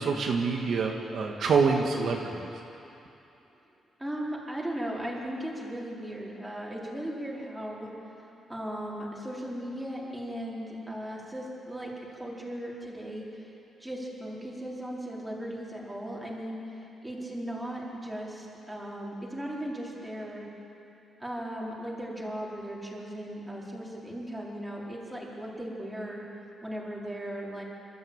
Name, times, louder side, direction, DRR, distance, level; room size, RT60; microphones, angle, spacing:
voice 1, 0.0-2.5, right 5 dB, 60° right, 1 dB, 1.8 m, -26 dB
voice 2, 4.0-7.9 8.5-13.3 13.8-16.6 17.0-20.4 21.2-26.2 26.6-27.6, right 1 dB, 5° right, -4 dB, 4.4 m, -37 dB
26.0 x 13.5 x 8.8 m, 2.9 s
cardioid pair, 125°, 0 cm